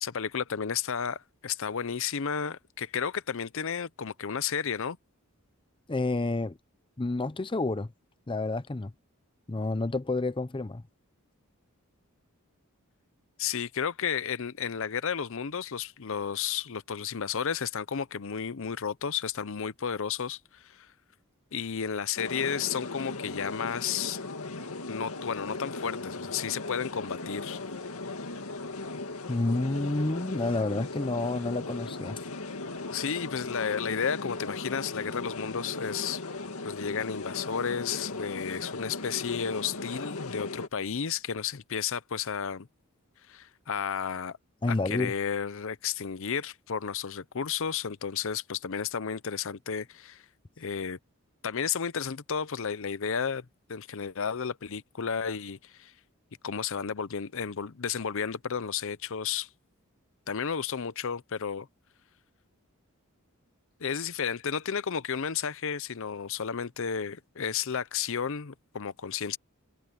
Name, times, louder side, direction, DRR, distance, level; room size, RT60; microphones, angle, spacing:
voice 1, 0.0-5.0 13.4-20.9 21.5-24.2 24.9-27.6 32.9-36.2 36.6-42.7 43.3-44.4 44.7-50.2 50.6-51.0 51.4-55.9 56.4-59.5 60.3-61.7 63.8-69.4, left 7 dB, 65° left, 0.7 m, -32 dB
voice 2, 5.9-6.6 7.0-7.9 8.3-8.9 9.5-10.8 29.3-32.2 44.6-45.1, left 2 dB, 25° left, 0.6 m, -29 dB
sound 1, 22.2-40.7, left 3 dB, 85° left, 2.1 m, -38 dB
head